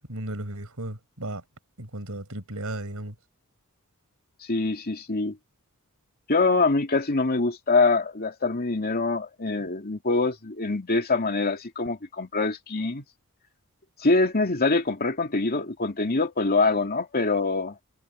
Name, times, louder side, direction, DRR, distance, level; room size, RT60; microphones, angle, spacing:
voice 1, 0.1-1.4 1.8-3.2, right 1 dB, 75° right, 5.2 m, -35 dB
voice 2, 4.5-5.4 6.3-13.0 14.0-17.8, left 3 dB, 45° left, 2.6 m, -24 dB
head